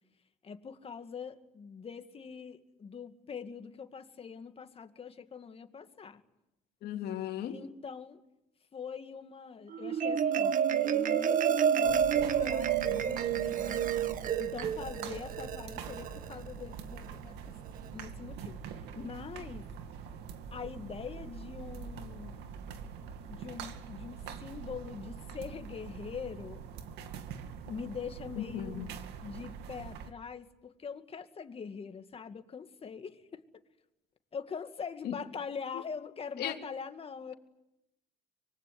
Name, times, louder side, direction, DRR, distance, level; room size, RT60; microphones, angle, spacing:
voice 1, 0.4-6.2 7.5-8.2 8.7-17.6 17.9-19.7 20.5-22.4 23.3-26.7 27.7-28.8 29.2-33.4 34.3-37.3, left 6 dB, 35° left, 2.3 m, -43 dB
voice 2, 6.8-7.6 28.4-28.9 35.0-35.2 36.4-36.5, left 11 dB, 70° left, 3.3 m, -36 dB
Marimba xylophone, 9.7-16.3, right 8 dB, 50° right, 1.5 m, -29 dB
sound 1, 11.8-30.1, right 7 dB, 85° right, 2.4 m, -44 dB
25.0 x 23.0 x 9.6 m
cardioid pair, 110°, 17 cm